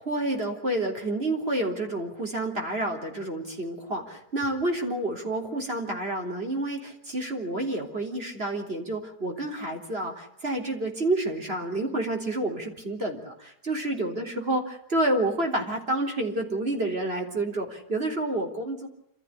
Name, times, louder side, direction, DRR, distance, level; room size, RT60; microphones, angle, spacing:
voice 1, 0.0-18.9, right 1 dB, 35° right, 1 dB, 3.9 m, -29 dB
27.5 x 14.0 x 10.0 m, 0.78 s
omnidirectional pair, 1.7 m